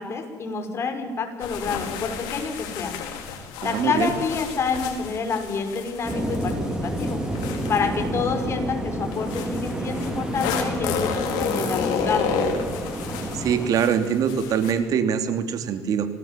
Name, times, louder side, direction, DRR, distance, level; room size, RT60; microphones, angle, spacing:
voice 1, 0.0-2.9 3.6-6.5 6.8-7.2 7.7-12.3, left 5 dB, 40° left, 5 dB, 5.6 m, -28 dB
sound 1, 1.4-8.4 9.1-14.7, left 6 dB, 80° left, 4.8 m, -31 dB
voice 2, 3.6-4.1 13.3-16.1, right 7 dB, 55° right, 8 dB, 3.1 m, -23 dB
sound 2, 6.0-13.7, right 1 dB, 10° right, 4.8 m, -29 dB
26.5 x 19.0 x 7.6 m, 1.5 s
supercardioid pair, 100°, 7 cm